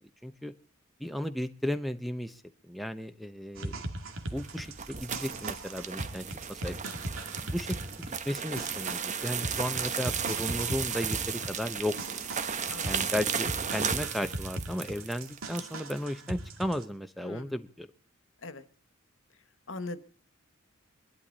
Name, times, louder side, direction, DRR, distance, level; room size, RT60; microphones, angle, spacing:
voice 1, 0.2-0.5 1.0-2.4 2.7-3.8 4.3-6.8 7.4-11.9 12.8-17.9, equal, ahead, 10 dB, 0.8 m, -35 dB
sound 1, 3.5-16.8, right 1 dB, 85° right, 2.3 m, -39 dB
sound 2, 4.2-16.0, right 7 dB, 35° right, 1.1 m, -35 dB
voice 2, 12.7-13.0 17.2-17.6 18.4-18.7 19.7-20.0, left 2 dB, 65° left, 11 dB, 1.6 m, -40 dB
23.0 x 12.0 x 4.1 m, 0.40 s
head